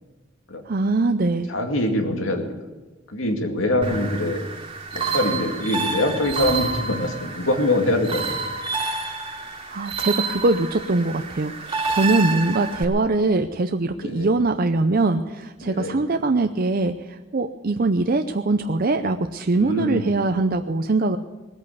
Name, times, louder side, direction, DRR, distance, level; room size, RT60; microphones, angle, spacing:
voice 1, 0.7-1.5 9.4-21.2, right 2 dB, 50° right, 7 dB, 0.6 m, -22 dB
voice 2, 1.5-2.5 3.1-4.4 4.9-8.6 14.0-14.3 15.6-16.0 19.5-20.1, left 1 dB, 90° left, 4 dB, 2.4 m, -24 dB
sound 1, 3.8-12.8, right 4 dB, 25° right, 2.3 m, -29 dB
19.5 x 8.6 x 8.3 m, 1.2 s
head